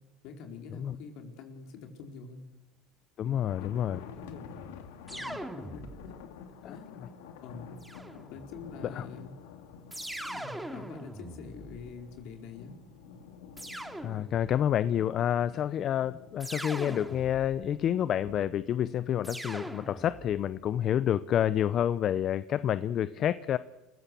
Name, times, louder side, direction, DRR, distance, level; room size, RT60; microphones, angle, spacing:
voice 1, 0.2-2.5 3.2-4.6 5.1-6.2 6.7-7.0 7.4-7.8 8.3-9.3 10.3-12.8, left 4 dB, 65° left, 3 dB, 4.6 m, -46 dB
voice 2, 3.2-4.0 6.6-6.7 9.0-9.1 14.0-23.6, left 10 dB, 50° left, 15 dB, 0.8 m, -28 dB
sound 1, 3.5-18.4, left 7 dB, 85° left, 2.4 m, -50 dB
sound 2, 5.1-6.3 7.8-8.7 9.9-12.2 13.6-14.7 16.4-17.8 19.2-20.5, right 1 dB, 5° right, 2.4 m, -41 dB
29.5 x 15.5 x 7.0 m, 1.1 s
supercardioid pair, 95°, 0 cm